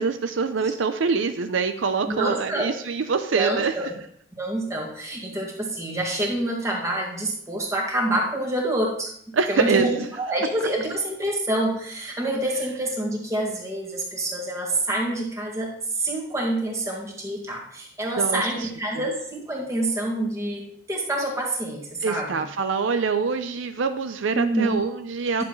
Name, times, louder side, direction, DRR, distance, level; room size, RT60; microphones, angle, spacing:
voice 1, 0.0-3.7 9.3-10.1 18.2-18.7 18.9-19.1 22.0-25.4, right 5 dB, 80° right, 8 dB, 0.5 m, -25 dB
voice 2, 2.1-2.7 3.3-3.9 4.4-20.6 20.9-22.4 24.3-24.8 25.4-25.5, right 1 dB, 15° right, -2 dB, 1.8 m, -27 dB
10.5 x 7.0 x 3.1 m, 0.65 s
head